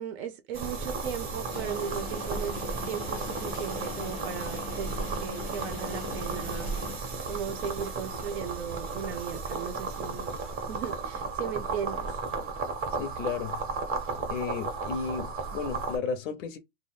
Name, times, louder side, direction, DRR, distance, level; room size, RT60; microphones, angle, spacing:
voice 1, 0.0-6.7 7.3-10.4 10.7-12.2, right 8 dB, 55° right, 0.6 m, -37 dB
sound 1, 0.5-16.0, right 4 dB, 25° right, 0.7 m, -34 dB
sound 2, 1.5-7.0, left 6 dB, 30° left, 0.4 m, -42 dB
voice 2, 13.0-13.6 14.3-16.6, left 6 dB, 75° left, 0.6 m, -33 dB
2.3 x 2.1 x 3.2 m
supercardioid pair, 140°, 38 cm